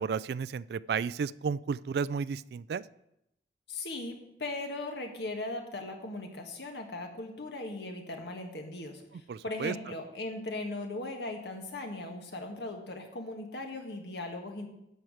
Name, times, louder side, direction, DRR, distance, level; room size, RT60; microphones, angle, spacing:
voice 1, 0.0-2.8 9.3-9.7, right 6 dB, 65° right, 19 dB, 0.3 m, -32 dB
voice 2, 3.7-14.7, left 2 dB, 70° left, 3 dB, 1.8 m, -38 dB
12.0 x 4.6 x 8.0 m, 0.83 s
head